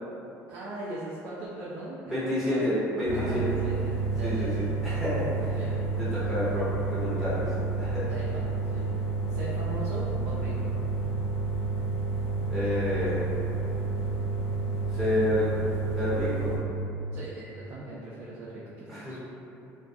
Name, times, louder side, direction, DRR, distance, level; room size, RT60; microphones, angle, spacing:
voice 1, 0.5-2.7 3.1-4.7 5.6-5.8 8.1-8.9 9.3-10.7 17.1-19.2, right 2 dB, 55° right, -6 dB, 0.4 m, -39 dB
voice 2, 2.1-3.4 4.2-5.3 6.0-7.5 7.8-8.0 12.5-13.4 14.9-15.5 16.0-16.5 18.9-19.3, left 1 dB, 5° right, -12 dB, 0.6 m, -29 dB
sound 1, 3.0-16.6, right 3 dB, 75° left, 0.7 m, -30 dB
2.2 x 2.2 x 2.5 m, 2.7 s
cardioid pair, 130°, 6 cm